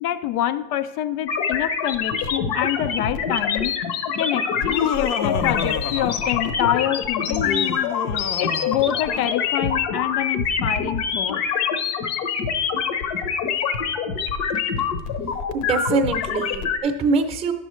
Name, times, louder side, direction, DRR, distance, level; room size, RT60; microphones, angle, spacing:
voice 1, 0.0-3.8 4.2-7.7 8.4-11.4, left 12 dB, 80° left, 13 dB, 0.7 m, -26 dB
sound 1, 1.3-16.8, left 6 dB, 60° left, 1.0 m, -25 dB
Laughter, 4.5-6.7 7.2-9.5, left 8 dB, 40° left, 0.6 m, -29 dB
voice 2, 15.5-17.5, right 4 dB, 15° right, 5 dB, 0.7 m, -23 dB
11.0 x 6.9 x 3.1 m, 1.0 s
supercardioid pair, 125°, 44 cm